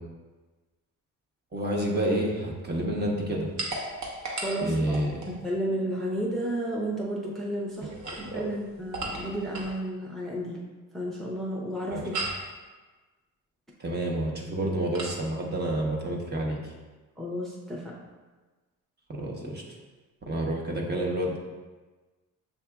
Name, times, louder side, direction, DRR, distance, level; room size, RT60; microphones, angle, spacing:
voice 1, 1.5-3.5 4.6-5.2 7.8-8.5 11.9-12.1 13.8-16.7 19.1-19.6 20.2-21.4, right 1 dB, 30° right, -2 dB, 0.8 m, -29 dB
sound 1, 3.6-5.4 7.8-9.8 12.1-12.5 14.9-15.2, right 2 dB, 55° right, 1.0 m, -35 dB
voice 2, 4.4-5.1 5.4-7.9 8.3-10.6 10.9-12.2 17.2-18.0, right 1 dB, ahead, -4 dB, 0.6 m, -32 dB
6.8 x 2.6 x 2.3 m, 1.3 s
cardioid pair, 85°, 34 cm